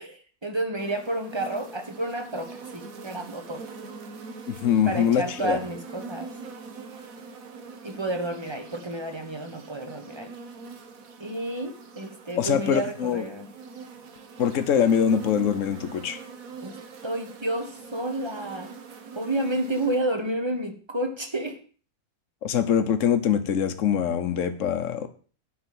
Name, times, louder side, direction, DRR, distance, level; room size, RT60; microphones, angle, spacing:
voice 1, 0.0-3.6 4.8-6.3 7.8-10.3 11.2-13.5 16.6-16.8 17.0-18.8 19.1-21.6, right 1 dB, 20° right, 6 dB, 1.2 m, -30 dB
sound 1, 0.8-20.0, right 4 dB, 70° right, 1.6 m, -43 dB
voice 2, 4.5-5.6 12.4-13.2 14.4-16.2 22.4-25.1, left 8 dB, 60° left, 9 dB, 1.3 m, -23 dB
8.6 x 5.5 x 7.7 m, 0.40 s
omnidirectional pair, 1.6 m